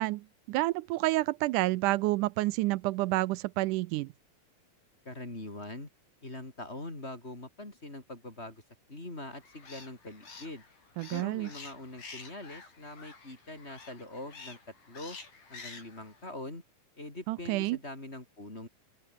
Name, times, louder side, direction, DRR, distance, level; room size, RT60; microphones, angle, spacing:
voice 1, 0.0-4.1 11.0-11.5 17.3-17.8, right 19 dB, 85° right, 2.1 m, -29 dB
voice 2, 5.0-5.9 6.2-8.6 8.9-10.6 11.1-14.6 14.9-15.2 15.5-16.6 17.0-18.7, left 2 dB, 20° left, 4.5 m, -43 dB
sound 1, 9.3-16.3, left 4 dB, 75° left, 7.5 m, -50 dB
open air
omnidirectional pair, 3.6 m